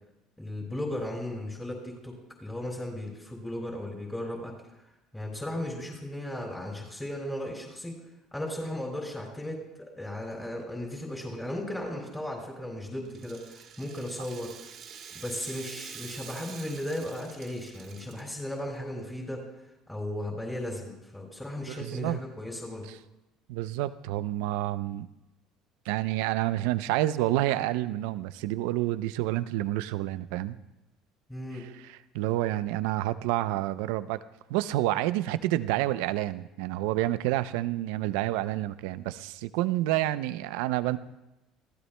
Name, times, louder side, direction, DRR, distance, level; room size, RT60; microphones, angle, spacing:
voice 1, 0.4-4.5 5.1-8.0 8.3-14.7 15.1-19.4 19.9-22.9 31.3-31.7, left 1 dB, 5° left, -1 dB, 4.6 m, -36 dB
Rattle (instrument), 13.0-18.5, right 7 dB, 55° right, 2.7 m, -46 dB
voice 2, 21.7-22.2 23.5-25.1 25.9-30.6 31.6-34.2 34.5-41.0, right 15 dB, 80° right, 14 dB, 0.5 m, -29 dB
25.0 x 15.5 x 2.2 m, 0.97 s
supercardioid pair, 90°, 0 cm